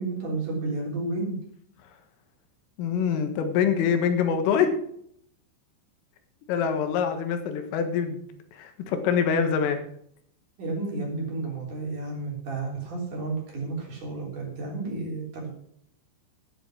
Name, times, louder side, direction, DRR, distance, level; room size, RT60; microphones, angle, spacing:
voice 1, 0.0-1.4 10.6-15.5, right 3 dB, 45° right, -1 dB, 4.5 m, -31 dB
voice 2, 2.8-4.8 6.5-8.2 8.5-9.8, left 7 dB, 85° left, 7 dB, 4.0 m, -25 dB
10.0 x 9.9 x 6.3 m, 0.66 s
omnidirectional pair, 5.8 m